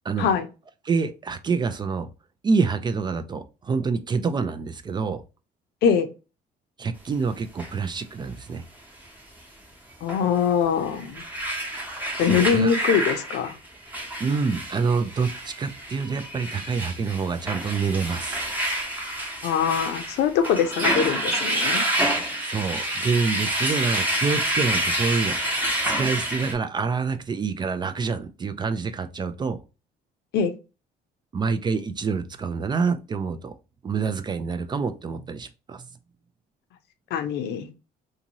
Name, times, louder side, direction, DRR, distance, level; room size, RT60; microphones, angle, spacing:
voice 1, 0.9-2.1 2.4-5.2 6.8-8.6 12.3-12.7 14.2-18.4 22.4-25.7 26.0-29.6 31.3-33.5 33.8-35.8, right 5 dB, 25° right, 0.3 m, -27 dB
sound 1, 7.6-7.7 10.1-10.2 10.8-26.5, right 1 dB, 10° right, 0.9 m, -28 dB
voice 2, 10.0-11.2 12.2-13.5 19.4-21.9 30.3-30.5 37.1-37.7, left 7 dB, 75° left, 0.6 m, -23 dB
2.6 x 2.6 x 2.9 m
cardioid pair, 110°, 17 cm